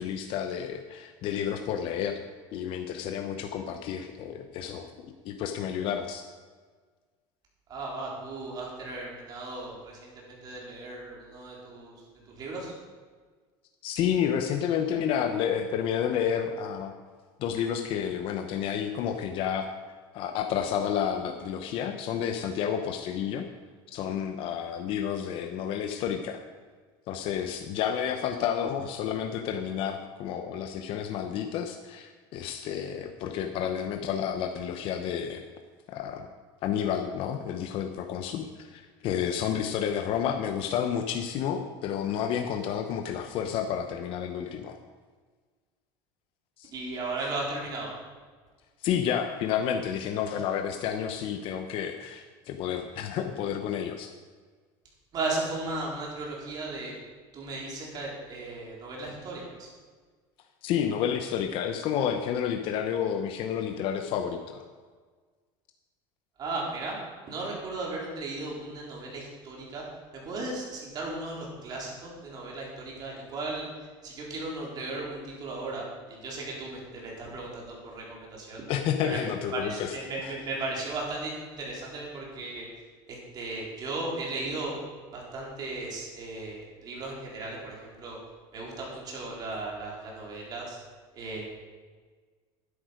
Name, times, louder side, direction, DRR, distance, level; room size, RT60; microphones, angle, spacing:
voice 1, 0.0-2.2 2.5-6.2 13.8-16.9 17.4-19.7 20.1-23.4 23.9-26.4 27.1-35.4 35.9-36.3 36.6-44.8 46.6-46.7 48.8-54.1 60.6-64.6 78.7-79.9 80.2-80.3, left 8 dB, 50° left, 6 dB, 0.9 m, -30 dB
voice 2, 7.7-12.7 46.7-47.9 55.1-56.9 57.3-59.7 66.4-67.0 67.2-69.8 70.1-73.7 74.0-78.6 79.0-79.2 79.5-82.7 83.1-84.7 85.1-88.2 88.5-90.8 91.1-91.4, right 2 dB, 35° right, -3 dB, 3.9 m, -36 dB
12.5 x 10.5 x 5.1 m, 1.5 s
cardioid pair, 155°, 12 cm